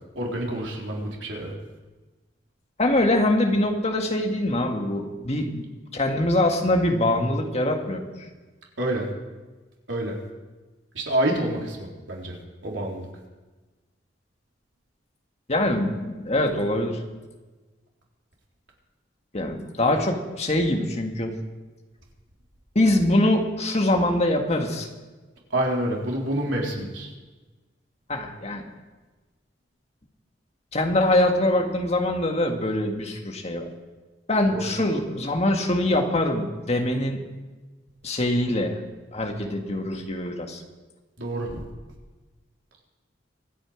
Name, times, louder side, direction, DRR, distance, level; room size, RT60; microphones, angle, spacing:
voice 1, 0.2-1.5 8.8-9.1 9.9-10.2 10.9-13.1 25.5-27.1 34.5-34.7 41.2-41.6, right 1 dB, 90° right, -1 dB, 3.7 m, -28 dB
voice 2, 2.8-5.6 5.9-8.0 15.5-17.0 19.3-21.4 22.8-24.9 26.8-26.9 28.1-28.7 30.7-33.7 34.3-37.2 38.0-38.8 39.1-40.6, left 1 dB, 35° left, 4 dB, 1.7 m, -23 dB
24.5 x 9.1 x 5.0 m, 1.2 s
head